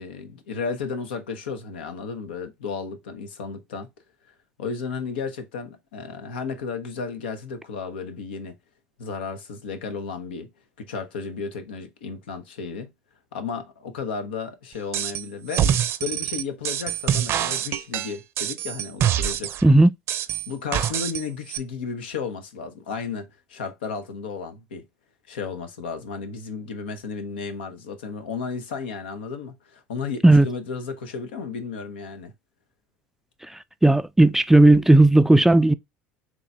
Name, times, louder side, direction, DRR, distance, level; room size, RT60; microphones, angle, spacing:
voice 1, 0.0-3.9 4.6-8.5 9.0-10.5 10.8-12.9 13.3-15.6 16.0-19.5 20.5-24.8 25.3-32.3, left 5 dB, 85° left, 0.8 m, -33 dB
sound 1, 14.9-15.2 15.5-19.6 20.1-21.2 21.5-21.6, right 10 dB, 50° right, 0.6 m, -25 dB
voice 2, 33.8-35.7, right 2 dB, 5° right, 0.3 m, -14 dB
3.8 x 3.1 x 3.3 m
hypercardioid pair, 80°, 5 cm